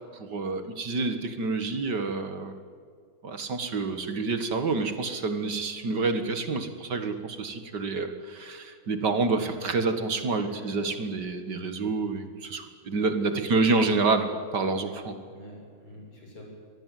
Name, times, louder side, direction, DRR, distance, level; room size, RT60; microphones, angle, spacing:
voice 1, 0.0-2.5 3.2-15.2, right 3 dB, 55° right, 8 dB, 2.2 m, -28 dB
voice 2, 13.1-13.9 15.3-16.4, left 1 dB, 80° left, 0 dB, 7.9 m, -45 dB
25.0 x 19.5 x 9.3 m, 2.1 s
omnidirectional pair, 2.3 m